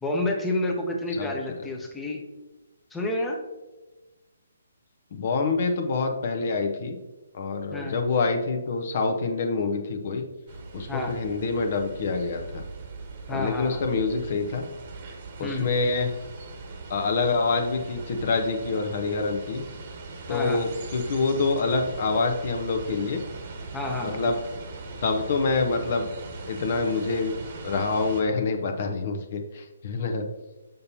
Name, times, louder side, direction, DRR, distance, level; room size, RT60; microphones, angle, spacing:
voice 1, 0.0-2.2 2.9-3.4 7.7-8.0 10.9-11.2 13.3-13.8 15.4-15.7 20.3-20.7 23.7-24.2, left 2 dB, 5° left, 0 dB, 0.8 m, -29 dB
voice 2, 5.1-7.0 7.3-10.2 10.7-12.6 13.3-14.6 15.4-16.1 16.9-19.6 20.3-23.2 24.0-24.4 25.0-26.1 26.5-27.4 27.6-30.2, left 4 dB, 50° left, 5 dB, 0.8 m, -26 dB
sound 1, 10.5-28.2, right 3 dB, 45° right, 1.1 m, -40 dB
6.7 x 5.4 x 2.8 m, 1.1 s
figure-of-eight pair, 140°, 0 cm